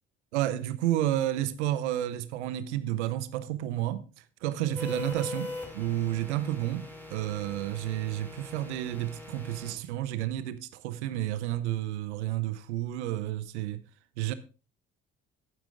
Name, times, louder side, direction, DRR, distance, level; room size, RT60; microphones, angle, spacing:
voice 1, 0.3-13.8 14.2-14.3, right 13 dB, 80° right, 0.8 m, -31 dB
sound 1, 4.8-9.7, left 2 dB, 5° left, 4.0 m, -41 dB
11.0 x 9.7 x 3.6 m
hypercardioid pair, 50°, 34 cm